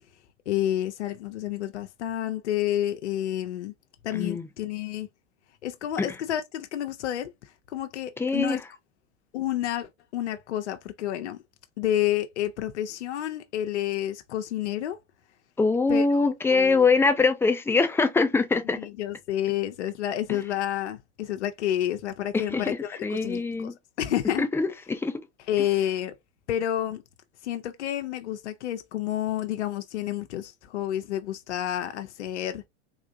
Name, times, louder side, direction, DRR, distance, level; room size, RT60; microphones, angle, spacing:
voice 1, 0.5-3.7 4.0-5.1 5.6-7.3 7.7-8.6 9.3-11.4 11.8-15.0 15.9-16.1 16.5-16.9 18.7-24.5 25.5-26.1 26.5-27.0 27.4-32.7, left 12 dB, 80° left, 0.7 m, -29 dB
voice 2, 4.1-4.5 6.0-6.1 8.2-8.6 15.6-18.8 20.3-20.4 22.3-23.7 24.4-25.2, left 4 dB, 5° left, 0.4 m, -23 dB
3.6 x 2.5 x 2.6 m
hypercardioid pair, 100°, 34 cm